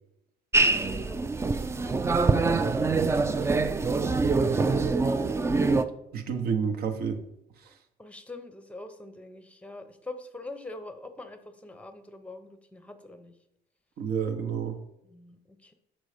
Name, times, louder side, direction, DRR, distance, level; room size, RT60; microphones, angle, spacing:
sound 1, 0.5-5.8, right 3 dB, 15° right, 0.3 m, -24 dB
voice 1, 0.7-1.4 1.8-3.5 3.8-5.6 8.0-13.3 15.1-15.7, left 2 dB, 5° left, 9 dB, 0.7 m, -44 dB
voice 2, 6.1-7.2 7.6-7.8 14.0-14.8, right 6 dB, 65° right, 7 dB, 0.9 m, -29 dB
6.1 x 4.0 x 4.9 m, 0.82 s
cardioid pair, 110°, 17 cm